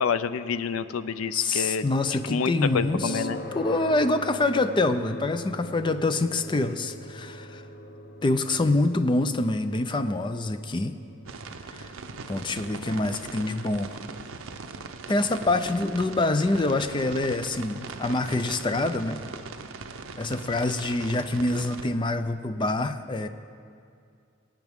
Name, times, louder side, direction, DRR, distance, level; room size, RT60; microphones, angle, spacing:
voice 1, 0.0-1.9 2.1-3.4, left 6 dB, 85° left, 13 dB, 0.4 m, -28 dB
voice 2, 1.3-3.3 3.5-7.6 8.2-11.0 11.7-11.8 12.3-14.0 15.1-19.2 20.2-23.3, left 2 dB, 25° left, 10 dB, 0.4 m, -26 dB
sound 1, 2.7-17.7, equal, 50° left, 0.8 m, -42 dB
sound 2, 11.3-21.9, right 4 dB, 75° right, 0.6 m, -40 dB
23.0 x 9.0 x 3.6 m, 2.4 s
head